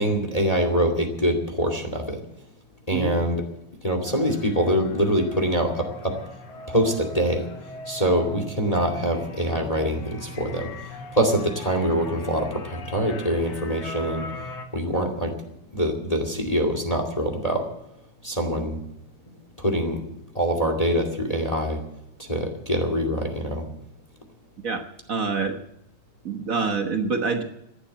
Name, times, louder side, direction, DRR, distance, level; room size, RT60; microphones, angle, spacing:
voice 1, 0.0-2.2 2.9-3.4 3.8-6.1 6.7-7.4 7.9-10.7 11.1-14.3 14.7-15.3 15.7-17.6 18.2-18.8 19.6-20.0 20.3-21.8 22.2-23.7, equal, 15° left, 5 dB, 2.0 m, -24 dB
sound 1, 4.0-14.7, left 2 dB, 60° left, 2.5 m, -40 dB
voice 2, 24.6-25.6 26.2-27.4, right 4 dB, 60° right, 5 dB, 0.8 m, -26 dB
14.5 x 11.5 x 7.9 m, 0.83 s
omnidirectional pair, 3.3 m